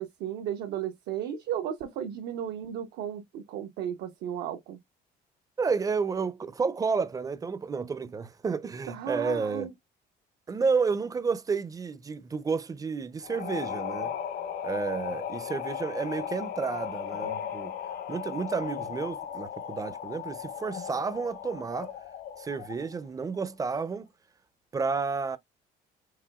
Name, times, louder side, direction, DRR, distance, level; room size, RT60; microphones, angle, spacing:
voice 1, 0.0-4.8 8.9-9.7, right 9 dB, 85° right, 0.7 m, -34 dB
voice 2, 5.6-9.7 10.5-14.1 14.6-17.7 18.1-21.9 22.4-24.1 24.7-25.4, right 5 dB, 20° right, 0.4 m, -31 dB
sound 1, 13.2-23.0, left 8 dB, 70° left, 1.0 m, -36 dB
4.8 x 3.3 x 2.3 m
cardioid pair, 110°, 17 cm